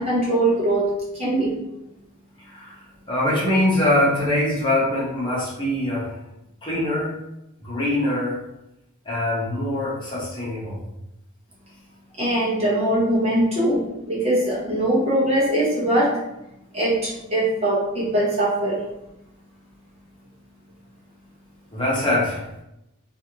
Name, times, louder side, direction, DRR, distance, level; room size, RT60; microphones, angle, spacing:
voice 1, 0.0-1.6 12.2-16.2 16.7-18.8, right 1 dB, 25° right, -6 dB, 0.9 m, -21 dB
voice 2, 2.4-2.8 3.1-6.2 6.6-7.1 7.6-8.4 9.0-10.8 21.7-22.5, left 1 dB, 20° left, -7 dB, 0.9 m, -23 dB
3.0 x 2.5 x 2.9 m, 0.86 s
head